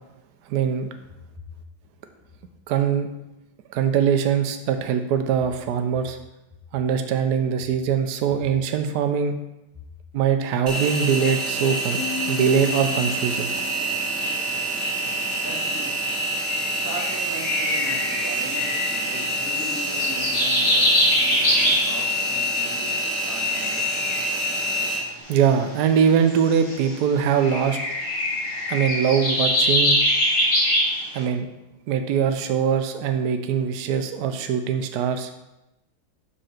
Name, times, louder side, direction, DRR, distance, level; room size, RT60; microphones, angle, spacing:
voice 1, 0.5-0.9 2.7-3.1 3.7-6.2 6.7-9.4 10.1-12.0 12.3-13.5 25.3-27.8 28.7-30.0 31.1-31.5 31.9-35.3, right 7 dB, 75° right, 6 dB, 0.9 m, -22 dB
Engine, 10.7-25.0, right 1 dB, 30° right, 1.9 m, -26 dB
Piano, 12.0-15.4, left 6 dB, 80° left, 0.4 m, -36 dB
voice 2, 15.4-16.0 16.8-23.8, right 1 dB, 10° right, -3 dB, 0.9 m, -38 dB
sound 1, 16.0-16.1 16.4-22.2 23.3-24.6 25.3-27.0 27.4-31.2, left 1 dB, 60° left, 2.5 m, -24 dB
5.3 x 4.9 x 5.7 m, 0.94 s
omnidirectional pair, 2.3 m